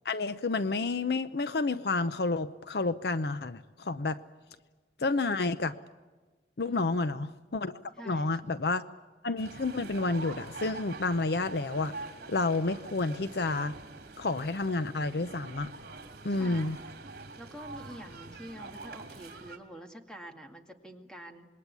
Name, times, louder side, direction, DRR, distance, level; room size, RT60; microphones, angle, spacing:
voice 1, 0.1-4.2 5.0-5.7 6.6-7.7 8.1-8.8 9.2-11.9 12.3-13.7 14.2-15.7 16.2-16.8, left 3 dB, 60° left, 13 dB, 0.7 m, -30 dB
voice 2, 6.7-7.1 7.9-8.7 16.3-16.7 17.4-21.5, equal, 5° left, 4 dB, 2.0 m, -47 dB
sound 1, 9.4-19.6, right 3 dB, 60° right, 2.9 m, -45 dB
26.5 x 21.5 x 8.4 m, 1.3 s
head